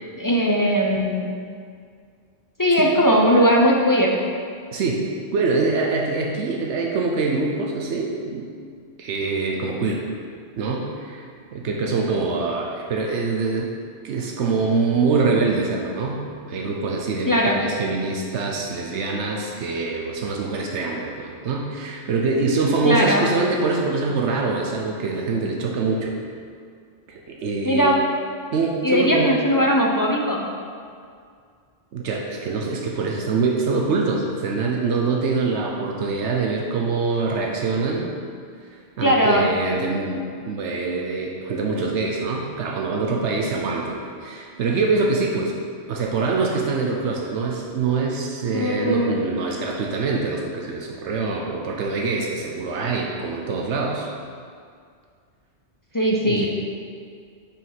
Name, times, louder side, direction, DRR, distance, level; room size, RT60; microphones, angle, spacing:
voice 1, 0.2-1.3 2.6-4.2 17.3-17.6 22.8-23.3 27.6-28.0 28.8-30.5 39.0-39.5 48.5-49.2 55.9-56.5, equal, 25° left, -2 dB, 0.5 m, -19 dB
voice 2, 4.7-8.5 9.0-10.1 10.6-11.2 11.5-13.7 14.0-26.1 27.1-27.9 28.5-29.4 31.9-38.1 39.0-45.5 45.9-54.1 56.2-56.5, right 4 dB, 85° right, 0 dB, 1.0 m, -24 dB
5.5 x 5.2 x 5.7 m, 2.2 s
omnidirectional pair, 1.1 m